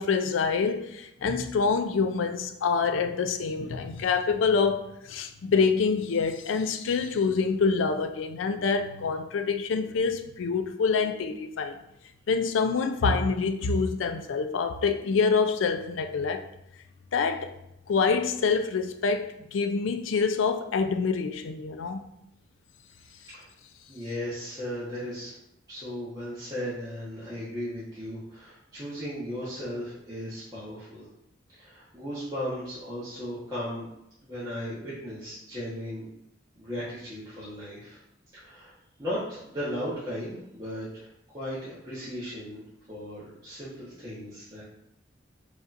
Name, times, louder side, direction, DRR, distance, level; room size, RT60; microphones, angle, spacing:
voice 1, 0.0-11.8 12.3-16.4 17.1-17.5 17.9-22.0, left 5 dB, 90° left, 0.4 m, -26 dB
voice 2, 23.1-23.5 23.9-25.4 25.7-31.1 31.5-33.9 34.2-36.0 36.6-38.0 38.3-42.6 42.9-44.6, equal, 20° right, 1.1 m, -36 dB
5.1 x 2.8 x 2.5 m
head